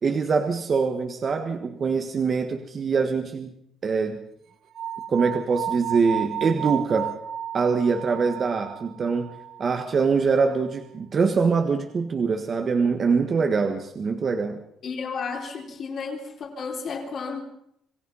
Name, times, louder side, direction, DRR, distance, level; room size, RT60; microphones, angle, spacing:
voice 1, 0.0-3.5 3.8-4.2 5.1-7.1 7.5-9.3 9.6-14.6, right 5 dB, 35° right, 1.7 m, -24 dB
sound 1, 4.7-9.8, right 10 dB, 55° right, 1.3 m, -33 dB
voice 2, 14.8-17.4, left 5 dB, 45° left, 4.3 m, -32 dB
27.0 x 18.0 x 5.7 m
cardioid pair, 165°, 0 cm